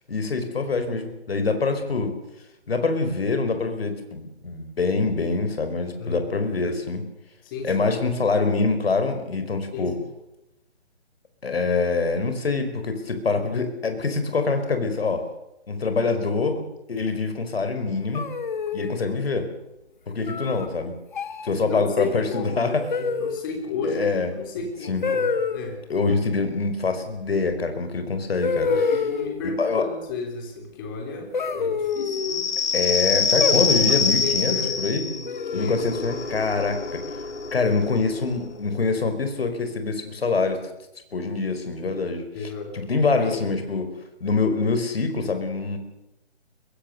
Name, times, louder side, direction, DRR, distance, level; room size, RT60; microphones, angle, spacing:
voice 1, 0.1-2.1 2.7-7.0 7.6-9.9 11.4-15.2 15.7-16.6 16.9-18.2 18.7-19.5 20.1-20.9 21.4-22.7 23.8-24.3 24.8-25.0 25.9-28.7 29.6-29.8 32.7-35.0 35.5-37.0 37.5-40.6 41.1-42.5 42.7-43.9 44.2-45.8, left 4 dB, 60° left, 7 dB, 4.8 m, -25 dB
voice 2, 7.4-7.8 9.7-10.0 21.7-25.9 28.7-32.5 33.9-36.2 42.3-43.6, left 4 dB, 20° left, 4 dB, 3.5 m, -33 dB
sound 1, 18.1-19.0 20.3-20.7 21.1-21.5 22.9-23.5 25.0-25.6 27.5-27.6 28.4-29.4 31.3-32.4 33.4-34.0 35.3-35.8, left 5 dB, 45° left, 1.8 m, -27 dB
sound 2, 32.0-39.2, left 5 dB, 90° left, 2.7 m, -26 dB
22.0 x 22.0 x 6.8 m, 0.89 s
hypercardioid pair, 165°, 34 cm